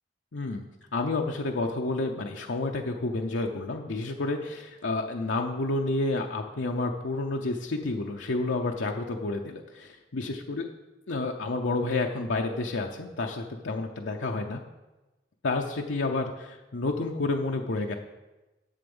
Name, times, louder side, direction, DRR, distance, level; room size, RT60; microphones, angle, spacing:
voice 1, 0.3-0.7 0.9-10.7 11.1-14.6 15.4-17.9, left 2 dB, 80° left, 1 dB, 0.7 m, -30 dB
11.0 x 6.9 x 5.4 m, 1.1 s
head